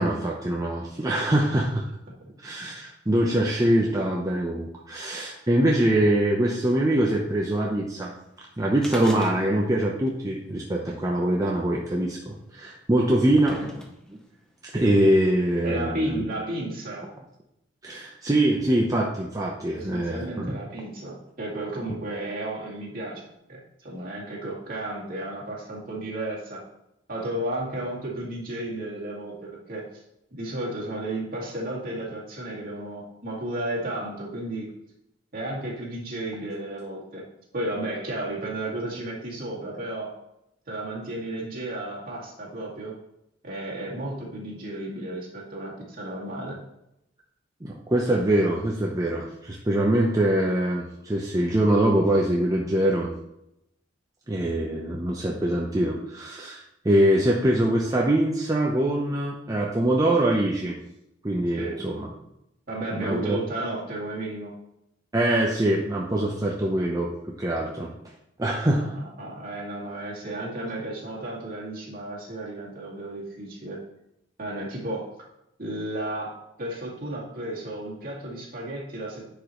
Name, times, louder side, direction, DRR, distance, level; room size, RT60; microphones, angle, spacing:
voice 1, 0.0-1.8 2.4-8.1 8.6-13.6 14.1-14.2 14.7-16.2 17.8-20.6 47.6-53.1 54.3-60.8 61.2-62.1 62.9-63.4 65.1-67.1 67.4-67.9 68.4-68.9, right 1 dB, 20° right, -2 dB, 0.7 m, -23 dB
sound 1, 8.8-9.8 10.1-10.2 11.1-11.2 12.1-12.2 12.9-14.2 15.1-15.2, left 1 dB, 5° left, 0.9 m, -38 dB
voice 2, 15.6-17.1 19.7-23.6 23.8-26.6 27.1-30.0 30.3-34.7 35.3-37.2 37.5-40.1 40.7-43.0 43.4-46.6 61.6-61.9 62.7-64.5 68.7-73.8 74.4-75.1 75.6-79.3, right 1 dB, 45° right, -4 dB, 2.3 m, -33 dB
10.0 x 5.1 x 3.1 m, 0.83 s
head